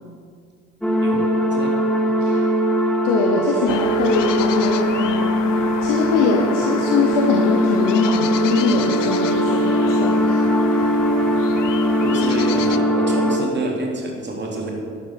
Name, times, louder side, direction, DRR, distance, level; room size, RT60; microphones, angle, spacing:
sound 1, 0.8-13.4, equal, ahead, 1.5 m, -20 dB
voice 1, 3.0-5.3 5.8-10.9, left 4 dB, 55° left, 1 dB, 1.3 m, -22 dB
sound 2, 3.7-12.8, left 11 dB, 75° left, 0.5 m, -32 dB
voice 2, 12.0-14.7, right 2 dB, 30° right, 0 dB, 3.1 m, -27 dB
12.0 x 8.9 x 5.8 m, 2.2 s
figure-of-eight pair, 50°, 37 cm